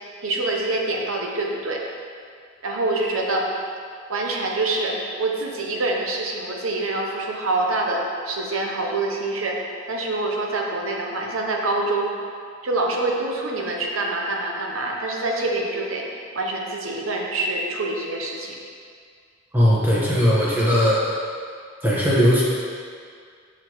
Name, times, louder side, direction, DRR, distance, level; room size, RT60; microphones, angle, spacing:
voice 1, 0.2-1.8 2.6-3.5 4.1-9.6 9.9-12.1 12.6-16.1 16.3-18.6, right 2 dB, 85° right, 0 dB, 0.9 m, -25 dB
voice 2, 19.5-21.0 21.8-22.4, equal, 10° right, -8 dB, 1.2 m, -18 dB
6.7 x 6.1 x 3.1 m, 2.2 s
head